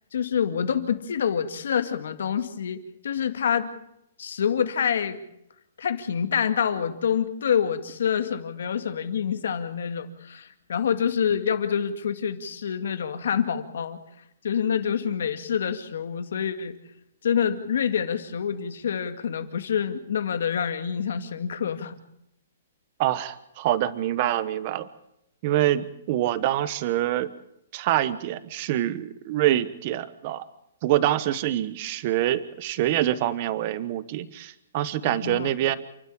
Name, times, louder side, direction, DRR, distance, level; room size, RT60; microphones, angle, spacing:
voice 1, 0.1-3.7 4.2-5.2 5.8-14.0 14.4-16.8 17.2-22.0 35.0-35.5, left 7 dB, 65° left, 9 dB, 2.2 m, -27 dB
voice 2, 23.0-24.9 25.4-27.3 27.7-30.5 30.8-35.8, right 13 dB, 30° right, 16 dB, 1.1 m, -25 dB
28.5 x 12.5 x 8.7 m, 0.79 s
hypercardioid pair, 175°, 0 cm